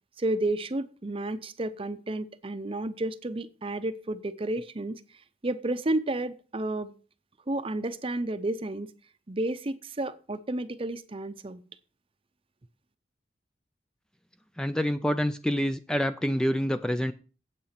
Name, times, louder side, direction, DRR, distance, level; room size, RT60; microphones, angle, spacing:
voice 1, 0.2-5.0 5.4-7.0 7.5-8.9 9.3-11.6, right 2 dB, 30° right, 0.7 m, -31 dB
voice 2, 14.6-17.1, equal, 5° left, 0.4 m, -27 dB
8.7 x 8.3 x 5.9 m
head